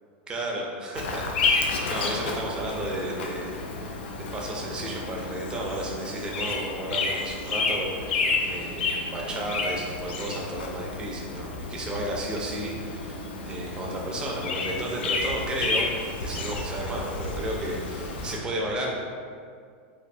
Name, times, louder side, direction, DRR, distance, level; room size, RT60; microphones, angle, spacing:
voice 1, 0.3-3.9 4.3-15.9 16.2-18.9, right 1 dB, 15° right, -2 dB, 0.4 m, -33 dB
Bird vocalization bird call bird song, 0.9-18.4, left 3 dB, 90° left, 0.4 m, -31 dB
3.1 x 2.1 x 2.5 m, 2.1 s
supercardioid pair, 155°, 6 cm